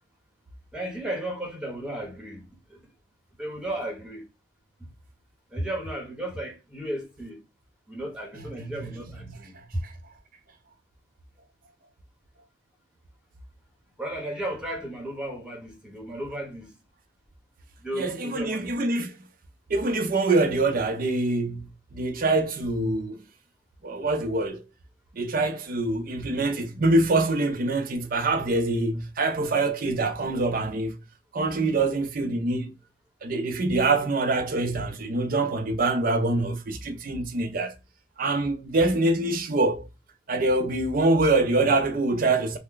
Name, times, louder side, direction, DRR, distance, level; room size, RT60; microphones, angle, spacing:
voice 1, 0.7-2.4 2.7-2.8 3.4-4.3 4.8-4.9 5.5-7.4 7.9-9.5 14.0-16.7 17.8-18.7 28.8-28.9, right 1 dB, 5° right, 1.2 m, -34 dB
voice 2, 8.6-8.9 9.3-9.9 17.9-19.1 19.7-23.2 23.8-24.6 25.1-31.0 31.3-32.7 33.2-37.7 38.2-39.9 40.3-42.6, right 2 dB, 50° right, 0.5 m, -25 dB
3.2 x 2.1 x 3.8 m
head